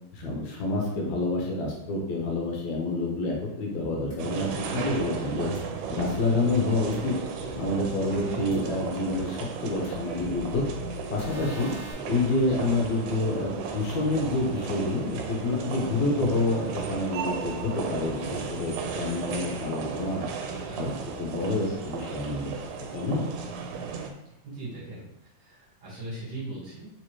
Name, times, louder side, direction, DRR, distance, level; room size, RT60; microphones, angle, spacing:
voice 1, 0.1-5.5 5.9-7.1 7.6-10.7 11.1-11.7 12.0-20.3 20.8-20.9 21.2-22.5 22.9-23.3, left 2 dB, 70° left, -1 dB, 2.0 m, -28 dB
sound 1, 4.1-4.2 5.5-5.6 6.9-7.0 8.5-8.6 9.8-9.9 11.2-11.9, right 1 dB, 30° left, 1.1 m, -44 dB
sound 2, 4.2-24.1, right 5 dB, 85° right, 2.1 m, -35 dB
voice 2, 8.1-8.5 12.5-12.7 20.4-20.9 21.6-21.8 24.4-26.9, right 2 dB, 45° right, -8 dB, 1.6 m, -40 dB
4.9 x 3.1 x 3.0 m, 0.86 s
omnidirectional pair, 3.7 m